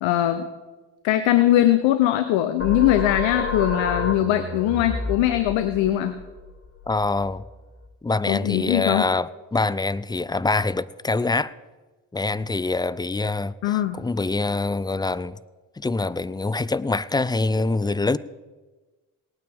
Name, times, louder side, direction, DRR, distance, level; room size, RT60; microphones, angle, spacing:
voice 1, 0.0-0.5 1.0-6.1 8.3-9.1 13.6-14.0, left 13 dB, 85° left, 0.7 m, -21 dB
sound 1, 2.6-7.9, left 2 dB, 25° left, 1.8 m, -31 dB
voice 2, 6.9-7.4 8.0-11.5 12.1-15.4 15.8-18.2, left 3 dB, 10° left, 0.3 m, -25 dB
18.5 x 9.3 x 3.5 m
supercardioid pair, 50°, 45 cm